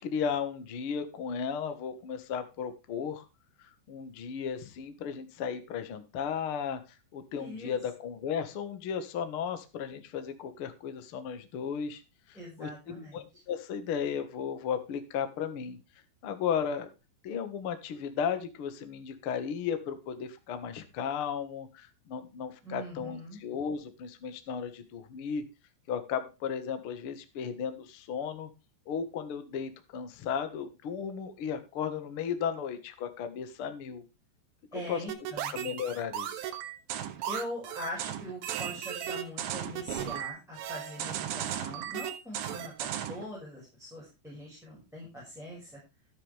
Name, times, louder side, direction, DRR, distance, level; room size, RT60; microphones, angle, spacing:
voice 1, 0.0-3.2 3.6-6.8 7.1-12.0 12.3-15.8 16.2-16.9 17.2-25.4 25.9-28.5 28.8-34.0 34.7-35.0 35.5-36.4, left 7 dB, 80° left, 9 dB, 1.2 m, -35 dB
voice 2, 7.3-7.7 12.3-13.3 22.6-23.4 34.7-35.6 37.3-45.8, left 1 dB, ahead, -4 dB, 5.4 m, -42 dB
sound 1, 35.1-43.3, right 10 dB, 85° right, 3.7 m, -36 dB
13.5 x 9.8 x 3.4 m, 0.28 s
omnidirectional pair, 5.2 m